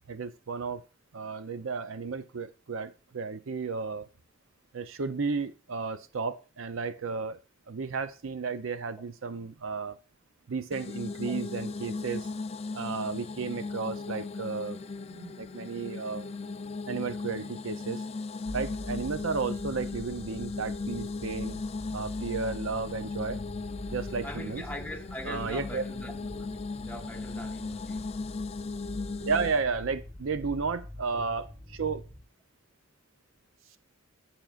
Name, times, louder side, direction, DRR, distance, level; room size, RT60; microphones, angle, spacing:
voice 1, 0.1-0.8 1.1-4.1 4.7-7.4 7.7-10.0 10.5-12.3 12.7-14.8 15.1-16.3 16.9-18.0 18.5-21.6 21.9-23.4 23.9-24.6 25.3-25.8 29.2-32.0, right 4 dB, 70° right, 0.6 m, -33 dB
sound 1, 10.7-29.6, left 3 dB, 30° left, 0.3 m, -37 dB
sound 2, 18.4-32.2, left 1 dB, 15° right, 1.6 m, -44 dB
voice 2, 24.2-28.2, left 1 dB, 10° left, 1.2 m, -42 dB
14.0 x 5.8 x 2.4 m
head